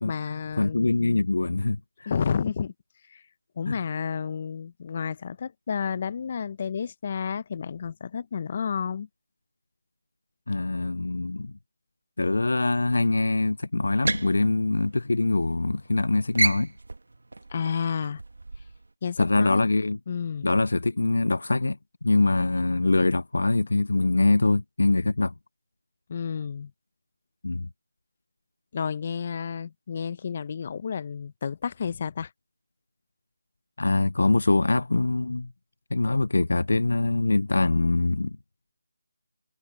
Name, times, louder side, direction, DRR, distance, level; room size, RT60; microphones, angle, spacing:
voice 1, 0.0-1.2 2.1-2.7 3.1-3.2 3.6-9.1 17.5-18.2 19.0-19.7 20.1-20.5 26.1-26.7 28.7-32.3, left 6 dB, 35° left, 0.9 m, -31 dB
voice 2, 0.6-2.1 3.7-3.8 10.5-11.5 12.2-16.7 19.2-20.0 20.4-25.3 27.4-27.7 33.8-35.5 35.9-38.4, left 2 dB, 75° left, 0.4 m, -23 dB
sound 1, 13.8-15.5 15.8-16.0 16.3-18.9, right 2 dB, 80° right, 2.0 m, -31 dB
figure-of-eight pair, 165°, 0 cm